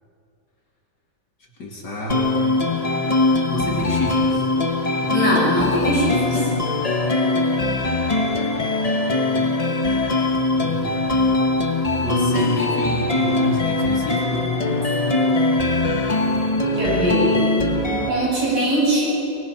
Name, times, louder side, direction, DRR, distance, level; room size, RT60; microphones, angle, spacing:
voice 1, 1.6-2.3 3.5-4.5 10.6-10.9 12.0-14.5, equal, 65° left, -2 dB, 2.9 m, -28 dB
sound 1, 2.1-18.1, left 2 dB, 25° left, 1.0 m, -21 dB
voice 2, 5.1-6.5 16.7-17.4 18.1-19.1, right 1 dB, 65° right, -7 dB, 8.4 m, -21 dB
24.0 x 22.5 x 5.9 m, 2.7 s
omnidirectional pair, 2.0 m